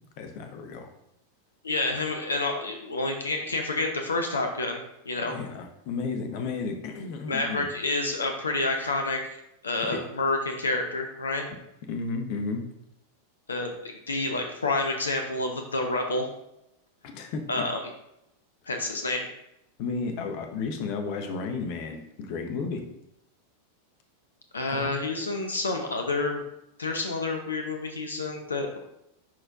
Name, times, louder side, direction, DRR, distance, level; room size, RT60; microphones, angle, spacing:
voice 1, 0.2-0.9 1.9-2.0 5.2-7.7 9.9-10.0 11.9-12.6 17.0-17.4 19.8-22.8 24.7-24.9, left 4 dB, 45° left, 5 dB, 0.9 m, -33 dB
voice 2, 1.6-4.8 5.1-5.4 7.3-9.2 9.6-11.5 13.5-16.3 17.5-17.8 18.7-19.3 24.5-26.4 26.8-28.8, left 2 dB, 75° left, 4 dB, 0.7 m, -29 dB
10.5 x 4.4 x 2.5 m, 0.83 s
figure-of-eight pair, 90°, 0 cm